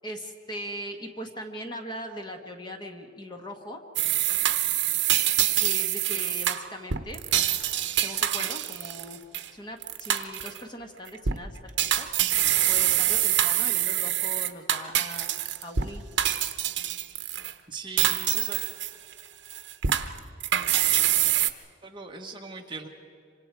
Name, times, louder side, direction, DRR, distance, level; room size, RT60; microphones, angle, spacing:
voice 1, 0.0-3.8 5.6-7.2 8.0-9.2 9.5-12.1 12.7-15.3 15.6-16.0, equal, 25° left, 4 dB, 1.5 m, -40 dB
sound 1, 4.0-9.5 9.8-10.6 11.1-11.4 11.8-15.9 16.2-17.5 18.0-19.2 19.5-21.5, right 12 dB, 65° right, 0.9 m, -25 dB
voice 2, 17.7-18.6 21.8-22.9, right 4 dB, 25° right, 2 dB, 1.5 m, -40 dB
26.5 x 25.0 x 4.8 m, 2.5 s
head